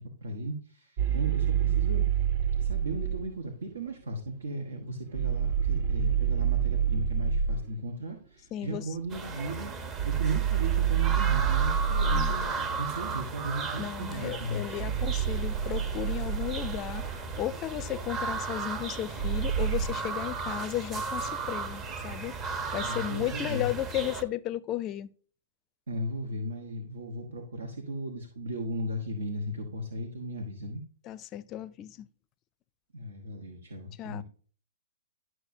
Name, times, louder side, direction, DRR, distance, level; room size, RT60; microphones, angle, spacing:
voice 1, 0.0-2.1 2.6-9.7 10.1-15.0 22.7-23.7 25.9-30.8 32.9-34.2, right 1 dB, 80° right, 1.2 m, -36 dB
sound 1, 1.0-3.3 5.1-7.7 10.0-12.5 14.8-17.4 19.2-19.9, right 8 dB, 50° right, 0.9 m, -27 dB
voice 2, 8.5-8.8 12.1-12.3 13.8-25.1 31.1-32.1 34.0-34.2, left 13 dB, 30° left, 0.5 m, -34 dB
sound 2, 9.1-24.2, right 4 dB, 25° right, 0.9 m, -35 dB
11.5 x 6.1 x 2.7 m
hypercardioid pair, 130°, 0 cm